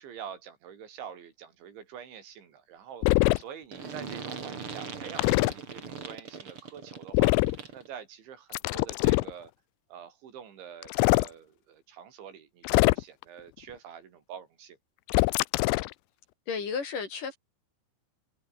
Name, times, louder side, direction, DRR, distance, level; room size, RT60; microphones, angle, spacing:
voice 1, 0.0-9.5 9.9-14.8, right 8 dB, 80° right, 5.8 m, -46 dB
sound 1, 3.0-3.4 5.2-5.5 7.1-7.6 8.5-9.3 10.8-11.3 12.7-13.2 15.1-15.9, left 22 dB, 85° left, 2.9 m, -23 dB
sound 2, 3.7-7.9, right 5 dB, 35° right, 3.3 m, -40 dB
voice 2, 16.5-17.4, left 5 dB, 50° left, 4.6 m, -33 dB
omnidirectional pair, 5.2 m